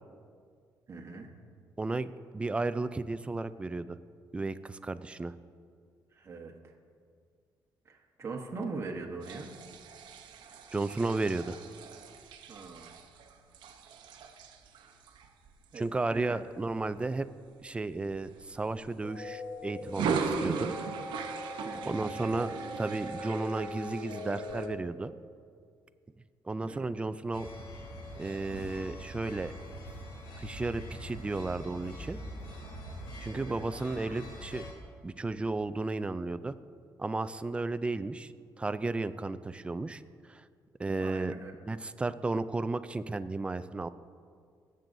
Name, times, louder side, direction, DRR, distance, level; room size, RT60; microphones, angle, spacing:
voice 1, 0.9-1.3 6.1-6.7 7.8-9.5 12.5-12.9 15.7-16.4 21.6-22.0 26.6-26.9 33.2-33.6 41.0-41.5, right 3 dB, 35° right, 0 dB, 1.2 m, -41 dB
voice 2, 1.8-4.0 4.3-5.3 10.7-11.6 15.7-17.3 17.6-20.7 21.9-25.1 26.5-27.5 28.2-29.5 30.4-32.2 33.2-34.6 35.0-36.5 37.0-38.3 38.6-40.0 40.3-40.4 40.8-41.3 41.7-43.9, right 3 dB, 15° right, 13 dB, 0.3 m, -33 dB
sound 1, 9.2-17.1 17.5-17.8 18.1-19.3 19.8-24.7, right 5 dB, 85° right, 0.8 m, -39 dB
sound 2, 19.0-24.7, left 1 dB, 35° left, 2.3 m, -41 dB
sound 3, 27.3-34.7, equal, 70° left, 2.6 m, -43 dB
20.0 x 7.6 x 2.7 m, 2.1 s
cardioid pair, 115°, 8 cm